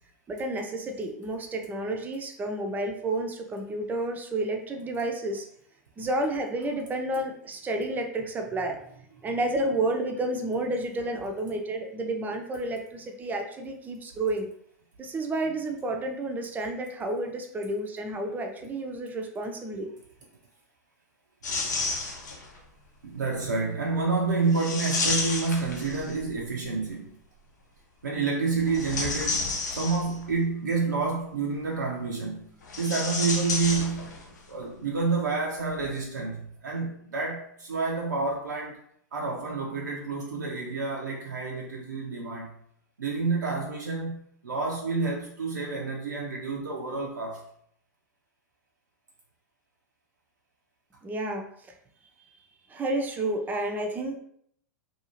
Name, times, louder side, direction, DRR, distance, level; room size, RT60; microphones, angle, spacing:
voice 1, 0.3-5.5 6.0-8.8 9.2-14.5 15.0-19.9 51.0-51.5 52.7-54.2, right 2 dB, 20° right, 0.5 m, -30 dB
sound 1, 21.4-22.6 24.5-26.4 28.6-30.3 32.6-34.4 34.6-34.7 35.7-35.9, left 3 dB, 75° left, 0.7 m, -31 dB
voice 2, 23.0-27.2 28.0-34.1 34.5-38.8 39.1-42.5 43.0-47.4, right 4 dB, 85° right, 0.5 m, -29 dB
2.7 x 2.3 x 2.9 m
hypercardioid pair, 100°, 10 cm